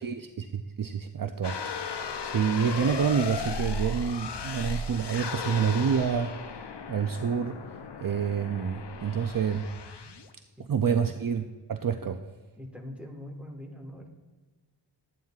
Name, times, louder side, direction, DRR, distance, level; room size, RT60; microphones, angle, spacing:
voice 1, 0.0-1.7 2.2-6.3 6.9-7.6 8.0-9.7 10.7-11.4 11.7-12.2, right 7 dB, 50° right, 7 dB, 0.5 m, -28 dB
sound 1, 1.4-10.3, left 4 dB, 70° left, 0.7 m, -36 dB
voice 2, 10.6-11.1 12.6-14.1, left 1 dB, 5° right, 1 dB, 1.4 m, -43 dB
13.0 x 9.1 x 2.4 m, 1.3 s
wide cardioid pair, 65°, 43 cm